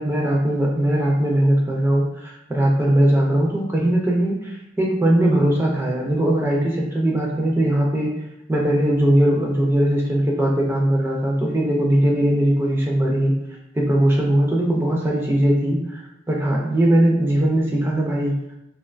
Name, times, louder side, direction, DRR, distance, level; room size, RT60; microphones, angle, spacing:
voice 1, 0.0-8.1 8.5-13.3 13.7-18.3, right 1 dB, 15° right, -2 dB, 0.3 m, -20 dB
2.4 x 2.2 x 2.3 m, 0.84 s
head